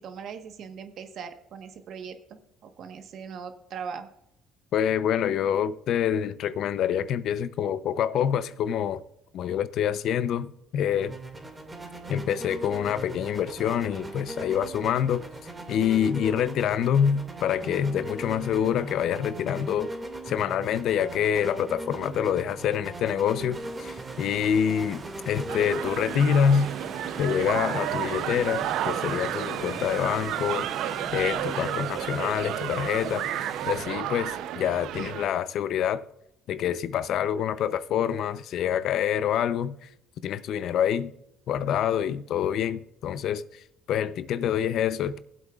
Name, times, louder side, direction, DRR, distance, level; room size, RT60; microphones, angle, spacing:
voice 1, 0.0-4.1, right 6 dB, 60° right, 1.3 m, -40 dB
voice 2, 4.7-9.0 9.3-11.2 12.1-15.2 15.7-19.9 20.3-26.7 27.2-30.7 31.1-33.3 33.7-36.0 36.5-39.8 40.2-41.1 41.5-43.4 43.9-45.2, left 8 dB, 65° left, 0.6 m, -26 dB
sound 1, 10.9-28.6, right 2 dB, 15° right, 2.2 m, -40 dB
sound 2, 23.5-33.8, right 4 dB, 35° right, 1.3 m, -40 dB
sound 3, 25.5-35.3, right 11 dB, 75° right, 0.6 m, -32 dB
18.5 x 8.1 x 2.4 m
cardioid pair, 105°, 0 cm